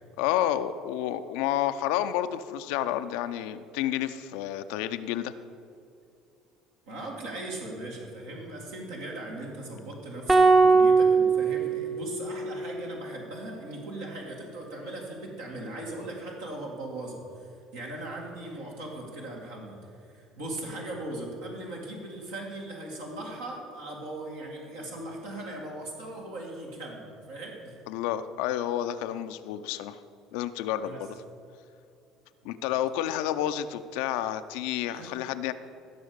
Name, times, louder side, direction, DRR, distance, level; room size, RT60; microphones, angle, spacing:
voice 1, 0.2-5.3 27.9-30.0 30.3-31.1 32.4-35.5, left 11 dB, 70° left, 11 dB, 0.5 m, -30 dB
voice 2, 6.9-27.8 30.8-31.1 34.9-35.1, right 1 dB, 75° right, -3 dB, 2.0 m, -39 dB
sound 1, 10.3-12.6, right 4 dB, 20° right, 0.9 m, -21 dB
15.5 x 6.3 x 5.1 m, 2.6 s
hypercardioid pair, 60°, 0 cm